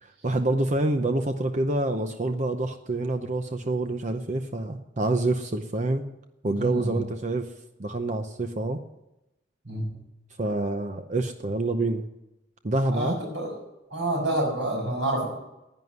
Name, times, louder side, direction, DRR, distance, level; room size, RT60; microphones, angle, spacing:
voice 1, 0.0-6.1 6.4-7.5 7.8-8.8 10.4-12.0 12.6-13.2, right 2 dB, 40° right, 7 dB, 0.7 m, -27 dB
voice 2, 6.5-7.0 9.6-10.0 12.9-13.5 13.9-15.3, right 1 dB, 75° right, -2 dB, 6.2 m, -28 dB
11.0 x 9.5 x 9.4 m, 0.93 s
head